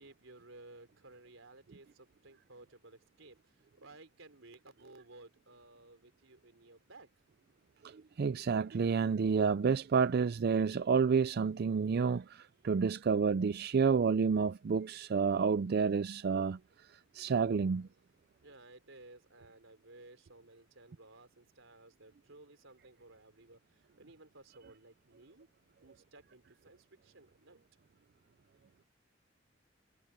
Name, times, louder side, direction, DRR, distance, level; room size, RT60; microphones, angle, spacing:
voice 1, 0.0-7.1 18.4-25.5 25.8-27.6, right 2 dB, 80° right, 3.8 m, -57 dB
voice 2, 7.8-16.6 17.1-17.9, right 5 dB, 50° right, 0.4 m, -29 dB
head